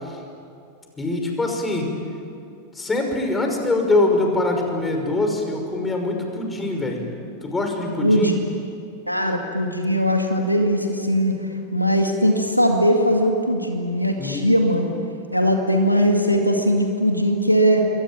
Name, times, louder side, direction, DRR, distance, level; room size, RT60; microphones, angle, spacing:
voice 1, 1.0-1.9 2.8-7.0 7.4-8.3 14.2-14.4, left 2 dB, 15° left, 3 dB, 5.7 m, -23 dB
voice 2, 8.0-8.3 9.1-11.3 11.7-14.9 15.3-17.8, equal, 90° left, 3 dB, 2.2 m, -20 dB
28.0 x 23.5 x 9.1 m, 2.5 s
figure-of-eight pair, 90°, 0 cm